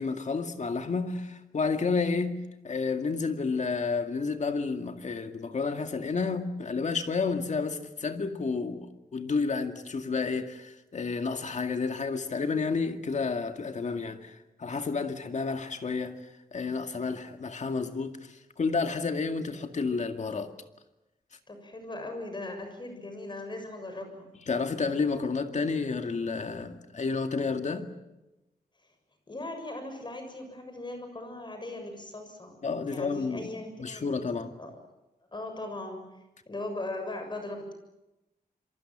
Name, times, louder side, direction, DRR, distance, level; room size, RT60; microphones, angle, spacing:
voice 1, 0.0-8.9 9.1-16.2 16.5-20.5 24.5-27.9 32.6-33.5 33.8-34.5, left 4 dB, 45° left, 2.2 m, -30 dB
voice 2, 21.5-24.3 29.3-32.6 32.9-34.1 34.6-34.7 35.3-36.0 36.5-37.7, left 2 dB, 30° left, 6.9 m, -39 dB
28.0 x 23.5 x 7.5 m
wide cardioid pair, 145°, 16 cm